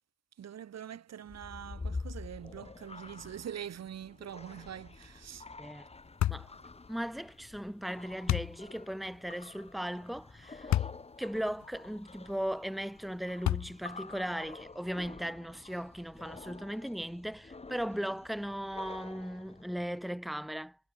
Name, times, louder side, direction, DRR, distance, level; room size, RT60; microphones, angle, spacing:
voice 1, 0.4-5.4, right 9 dB, 60° right, 2.8 m, -44 dB
sound 1, 1.2-20.0, left 3 dB, 20° left, 2.3 m, -48 dB
sound 2, 6.2-6.5 8.3-8.6 10.7-11.0 11.6-11.7 13.4-13.9, left 12 dB, 65° left, 1.1 m, -29 dB
voice 2, 6.2-6.6 6.9-10.9 11.2-20.8, equal, ahead, 2.2 m, -37 dB
cardioid pair, 90°, 30 cm